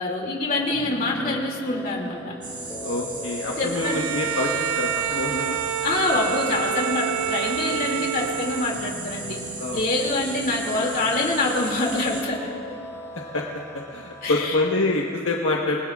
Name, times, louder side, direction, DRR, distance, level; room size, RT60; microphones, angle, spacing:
voice 1, 0.0-2.3 3.6-4.0 5.8-9.4 9.7-12.5 14.2-14.6, left 2 dB, 40° left, -1 dB, 2.5 m, -25 dB
sound 1, 0.6-14.8, equal, 15° left, 2.1 m, -39 dB
sound 2, 2.4-12.2, right 2 dB, 20° right, 1.6 m, -36 dB
voice 2, 2.8-5.6 9.6-10.1 13.3-13.4 13.7-15.8, left 2 dB, 65° left, -2 dB, 1.2 m, -26 dB
Bowed string instrument, 3.7-9.0, right 10 dB, 70° right, 0.3 m, -28 dB
28.0 x 20.5 x 2.4 m, 2.4 s
head